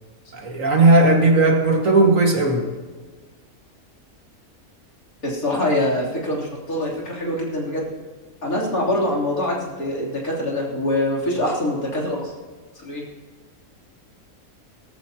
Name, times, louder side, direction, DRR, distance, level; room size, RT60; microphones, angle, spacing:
voice 1, 0.3-2.6, right 2 dB, 60° right, 1 dB, 2.2 m, -16 dB
voice 2, 5.2-7.9 8.4-12.3 12.8-13.0, left 1 dB, 75° left, -4 dB, 3.9 m, -24 dB
18.0 x 14.0 x 2.9 m, 1.4 s
omnidirectional pair, 1.5 m